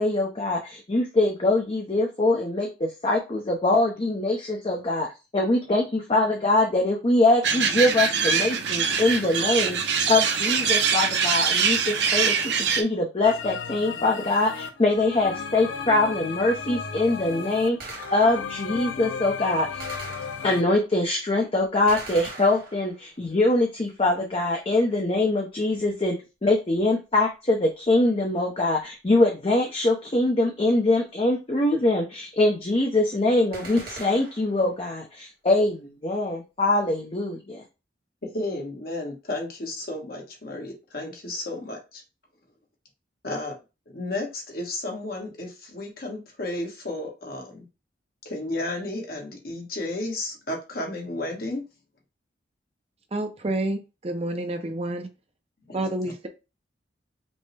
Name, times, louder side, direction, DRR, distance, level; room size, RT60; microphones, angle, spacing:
voice 1, 0.0-5.1 5.3-9.8 10.1-12.4 12.8-19.8 20.4-26.2 26.4-37.6, left 2 dB, 30° left, 0 dB, 0.6 m, -23 dB
sound 1, 7.4-12.8, right 6 dB, 70° right, 0.7 m, -23 dB
sound 2, 13.2-20.6, left 5 dB, 85° left, 0.6 m, -35 dB
Gunshot gunfire, 17.8-18.6 19.8-20.8 21.9-23.1 33.5-34.6, right 3 dB, 55° right, 1.4 m, -41 dB
voice 2, 38.2-42.0 43.2-43.5 43.9-47.6 48.2-51.6 55.7-56.1, left 2 dB, 55° left, 0 dB, 1.2 m, -33 dB
voice 3, 53.1-55.1 55.7-56.3, right 1 dB, 35° right, 6 dB, 0.6 m, -29 dB
5.3 x 2.1 x 3.2 m, 0.28 s
head